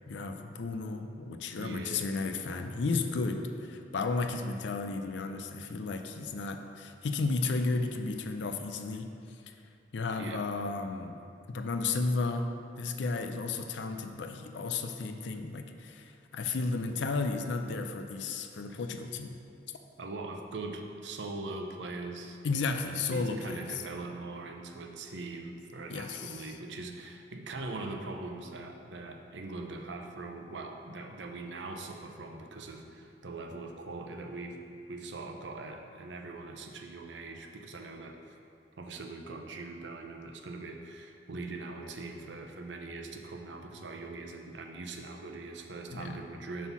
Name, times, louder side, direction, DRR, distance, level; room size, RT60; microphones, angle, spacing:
voice 1, 0.1-9.1 9.5-9.6 9.9-11.2 11.5-12.5 12.8-19.3 22.4-23.8 25.9-26.5 45.9-46.2, left 3 dB, 75° left, 6 dB, 0.5 m, -33 dB
voice 2, 1.6-2.1 10.2-10.4 20.0-22.4 22.8-34.6 34.9-38.4 38.8-46.7, right 3 dB, 75° right, 4 dB, 0.6 m, -41 dB
5.5 x 4.2 x 5.9 m, 2.5 s
head